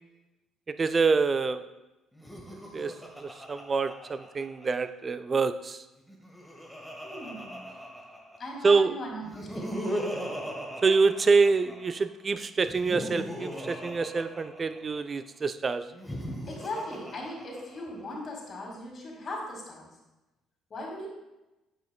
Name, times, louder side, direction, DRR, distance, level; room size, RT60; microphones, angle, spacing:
voice 1, 0.7-1.6 2.7-5.8 8.6-8.9 10.8-15.8, right 4 dB, 35° right, 11 dB, 0.4 m, -26 dB
Laughter, 2.1-4.9 6.0-8.6 9.2-12.0 12.6-15.0 15.9-18.0, equal, ahead, 1.3 m, -39 dB
voice 2, 7.0-7.9 8.4-9.9 16.5-20.0 20.7-21.1, left 1 dB, 40° left, 0 dB, 2.0 m, -39 dB
8.9 x 5.6 x 2.3 m, 1.0 s
figure-of-eight pair, 50°, 0 cm